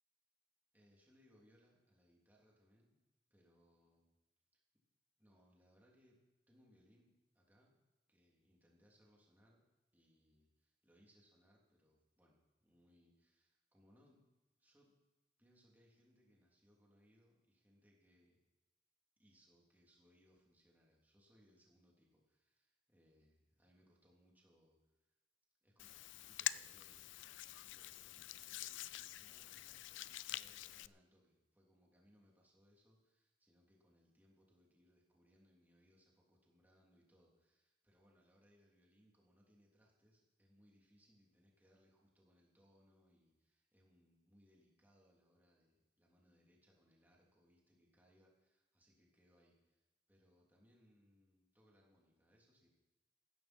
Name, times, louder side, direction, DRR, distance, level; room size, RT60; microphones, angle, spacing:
voice 1, 0.7-3.0 3.3-4.2 4.5-4.6 5.2-7.8 8.1-9.6 9.9-14.3 14.6-14.9 15.4-18.4 19.2-24.8 25.0-25.1 25.6-27.0 27.6-52.7, equal, 10° right, -3 dB, 3.2 m, -72 dB
Hands, 25.8-30.9, left 14 dB, 90° left, 0.4 m, -46 dB
15.5 x 13.5 x 4.5 m, 1.1 s
head